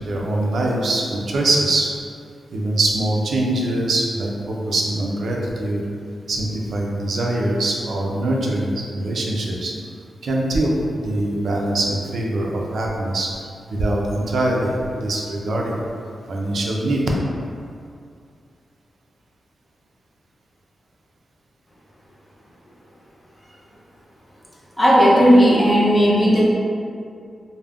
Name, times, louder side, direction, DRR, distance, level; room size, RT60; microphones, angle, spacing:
voice 1, 0.1-1.9 2.5-5.8 6.3-8.7 9.0-9.7 10.2-13.3 13.7-15.8 16.3-17.0, right 1 dB, 60° right, -2 dB, 0.4 m, -23 dB
voice 2, 24.8-26.5, equal, 15° left, -6 dB, 0.4 m, -14 dB
2.4 x 2.0 x 3.3 m, 2.3 s
wide cardioid pair, 175°, 0 cm